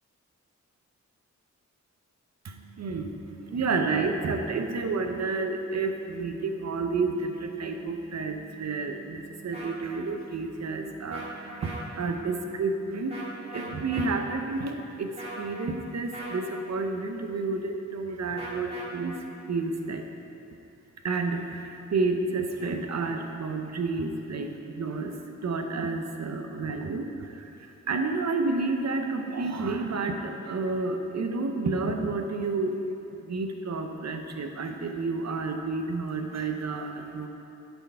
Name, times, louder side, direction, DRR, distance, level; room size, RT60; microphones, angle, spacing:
voice 1, 2.4-19.2 19.5-20.1 21.0-25.1 25.4-32.8 33.2-37.3, right 3 dB, 60° right, 5 dB, 0.7 m, -30 dB
sound 1, 9.5-9.7 11.1-11.3 11.6-11.8 13.1-13.3 13.5-14.1 15.2-15.5 16.1-16.4 18.4-18.8, right 2 dB, 20° right, 2.0 m, -39 dB
10.0 x 4.5 x 5.6 m, 2.9 s
wide cardioid pair, 105°, 31 cm